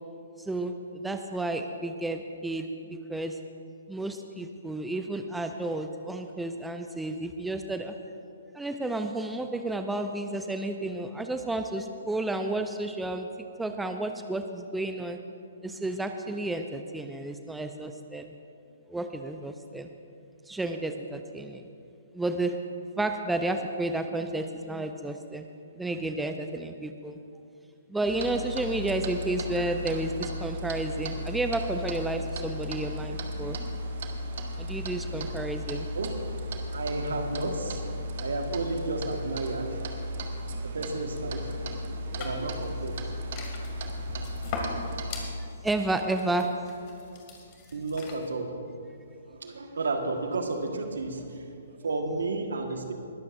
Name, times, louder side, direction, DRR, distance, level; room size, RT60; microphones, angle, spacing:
voice 1, 0.4-3.4 3.9-7.9 8.5-13.3 13.6-15.2 15.6-18.3 18.9-19.9 20.5-21.7 22.1-22.6 23.0-25.5 25.7-27.2 27.9-33.6 34.6-35.9 45.6-46.5, right 2 dB, 5° right, 6 dB, 0.5 m, -31 dB
Clock, 28.1-45.3, equal, 50° right, 1.4 m, -35 dB
voice 2, 35.9-36.2 36.7-39.8 40.7-43.1 47.7-48.6 49.3-52.9, right 3 dB, 70° right, 4 dB, 1.5 m, -32 dB
sound 1, 42.1-48.3, left 4 dB, 35° left, 2.3 m, -41 dB
21.0 x 13.5 x 2.6 m, 2.5 s
figure-of-eight pair, 125°, 0 cm